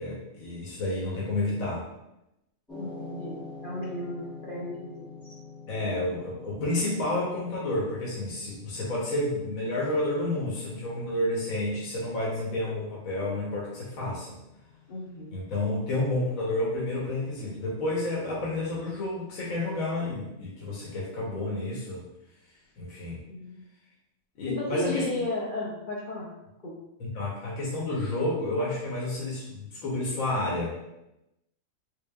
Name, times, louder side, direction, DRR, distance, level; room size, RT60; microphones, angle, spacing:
voice 1, 0.0-1.8 5.7-14.4 15.3-22.1 22.8-23.2 24.4-25.2 27.0-30.7, left 2 dB, 75° left, -6 dB, 1.3 m, -30 dB
sound 1, 2.7-20.9, left 3 dB, 5° left, 0.5 m, -49 dB
voice 2, 2.8-5.4 14.9-15.4 23.3-23.6 24.5-26.3 26.6-26.7, left 2 dB, 55° left, -5 dB, 0.6 m, -34 dB
3.7 x 3.4 x 2.2 m, 0.90 s
omnidirectional pair, 1.5 m